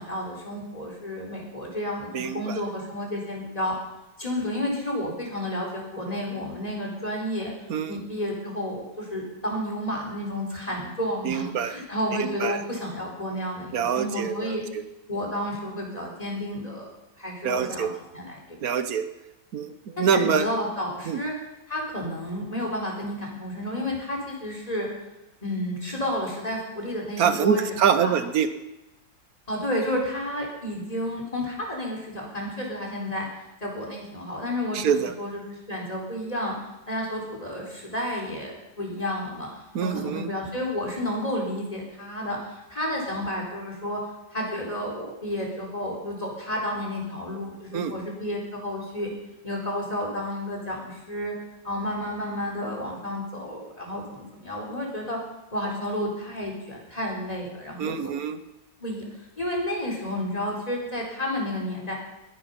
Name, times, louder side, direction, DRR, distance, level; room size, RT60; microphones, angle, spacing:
voice 1, 0.0-3.7 4.2-7.5 7.9-14.6 15.1-16.9 17.2-18.7 20.0-21.3 21.7-24.9 25.4-28.1 29.5-33.3 33.6-36.5 36.9-39.5 39.8-44.0 44.3-49.1 49.4-51.3 51.6-55.2 55.5-58.1 58.8-59.0 59.4-62.0, left 1 dB, 20° left, -1 dB, 4.1 m, -31 dB
voice 2, 2.1-2.6 7.7-7.9 11.2-11.8 12.2-12.6 13.7-14.8 17.4-17.9 18.6-19.1 19.5-20.5 21.1-21.2 27.2-28.5 34.7-35.1 39.7-40.3 47.7-48.0 57.8-58.4, right 7 dB, 60° right, 10 dB, 1.3 m, -25 dB
21.0 x 10.5 x 5.4 m, 0.95 s
omnidirectional pair, 1.9 m